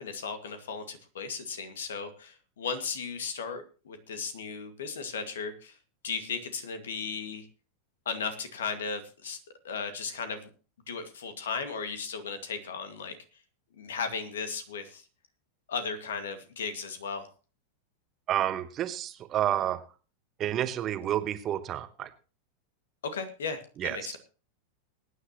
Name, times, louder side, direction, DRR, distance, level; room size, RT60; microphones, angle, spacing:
voice 1, 0.0-5.8 6.0-7.5 8.1-9.4 9.6-10.5 10.9-13.2 13.8-15.1 15.7-17.3 23.0-24.2, left 5 dB, 65° left, 9 dB, 2.0 m, -36 dB
voice 2, 18.3-19.8 20.4-22.1 23.8-24.0, right 11 dB, 30° right, 11 dB, 1.1 m, -29 dB
21.5 x 9.8 x 3.0 m, 0.36 s
figure-of-eight pair, 90°, 0 cm